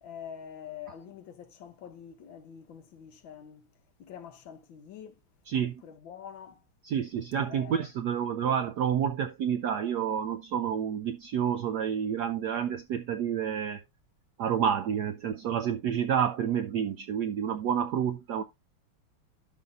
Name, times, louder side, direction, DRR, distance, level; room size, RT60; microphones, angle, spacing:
voice 1, 0.0-3.6 4.0-5.1 5.8-6.6 7.4-7.9, left 8 dB, 65° left, 1.7 m, -45 dB
voice 2, 5.5-5.8 6.8-13.8 14.4-18.4, right 8 dB, 75° right, 0.9 m, -29 dB
12.0 x 5.4 x 2.5 m
omnidirectional pair, 2.4 m